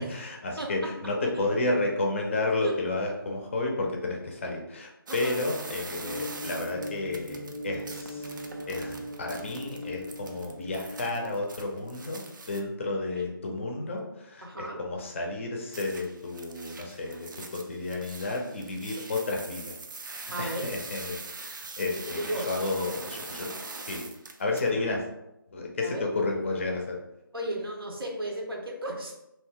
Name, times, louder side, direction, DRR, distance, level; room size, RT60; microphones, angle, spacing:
voice 1, 0.0-8.4 8.7-19.8 20.0-23.5 23.8-24.1 24.4-25.1 25.5-27.0, left 2 dB, 35° left, 1 dB, 0.4 m, -31 dB
voice 2, 0.6-0.9 1.2-1.4 2.6-2.8 5.1-5.4 13.2-13.3 14.4-14.8 20.3-20.7 21.9-22.5 25.8-26.0 27.3-29.1, right 1 dB, 80° right, 0 dB, 0.8 m, -34 dB
sound 1, 5.1-12.6 15.7-24.7, right 3 dB, 60° right, 0.4 m, -43 dB
sound 2, 6.0-11.1, equal, 5° left, 0.7 m, -39 dB
2.5 x 2.1 x 3.5 m, 0.89 s
figure-of-eight pair, 150°, 12 cm